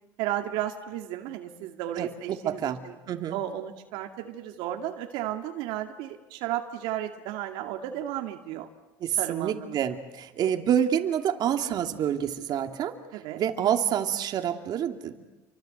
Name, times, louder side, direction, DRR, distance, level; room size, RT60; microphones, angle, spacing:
voice 1, 0.2-3.0 3.3-8.7 9.2-9.8 13.1-13.5, right 12 dB, 75° right, 4 dB, 2.2 m, -34 dB
voice 2, 2.0-2.8 3.1-3.4 9.0-12.9 13.3-15.2, right 9 dB, 50° right, 5 dB, 2.5 m, -27 dB
30.0 x 25.0 x 7.9 m, 1.1 s
supercardioid pair, 100°, 9 cm